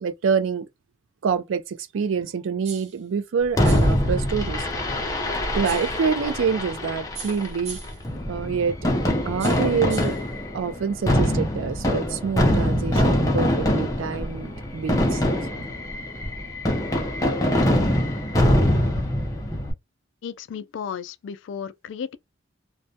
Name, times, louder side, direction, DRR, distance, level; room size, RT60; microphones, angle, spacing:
voice 1, 0.0-0.6 1.2-4.7 5.5-7.8 8.3-8.8 9.3-10.1 10.5-15.3, right 6 dB, 80° right, 0.4 m, -26 dB
sound 1, 2.6-3.0 3.6-4.0 5.6-6.0 7.1-8.0 9.4-10.2, right 6 dB, 35° right, 0.6 m, -39 dB
Fireworks, 3.6-19.7, left 1 dB, 15° left, 0.5 m, -23 dB
voice 2, 20.2-22.2, left 7 dB, 70° left, 0.3 m, -34 dB
2.2 x 2.1 x 2.6 m
head